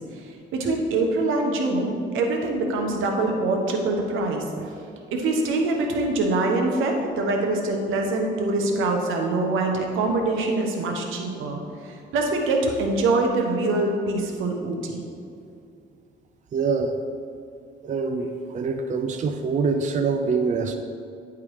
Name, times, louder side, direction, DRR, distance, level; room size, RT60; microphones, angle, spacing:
voice 1, 0.1-4.7 5.1-15.0, right 2 dB, 85° right, 2 dB, 1.1 m, -24 dB
voice 2, 16.5-17.0 17.8-20.8, right 4 dB, 40° right, 6 dB, 0.5 m, -25 dB
9.9 x 3.7 x 4.8 m, 2.4 s
cardioid pair, 90°, 20 cm